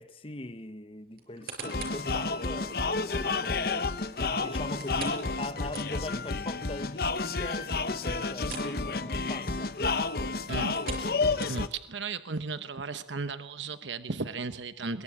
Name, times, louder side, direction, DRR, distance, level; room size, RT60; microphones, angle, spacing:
voice 1, 0.0-3.9 4.4-9.7, left 2 dB, 30° left, 1.1 m, -41 dB
sound 1, 1.2-2.1 2.6-2.7 4.8-6.3 6.6-6.7 7.1-7.2 8.4-8.8 9.1-9.3 10.6-11.9 12.5-12.6, right 4 dB, 55° right, 5.8 m, -42 dB
sound 2, 1.6-11.7, left 3 dB, 55° left, 1.1 m, -30 dB
voice 2, 11.5-15.0, right 4 dB, 85° right, 1.0 m, -35 dB
22.5 x 22.5 x 8.7 m
head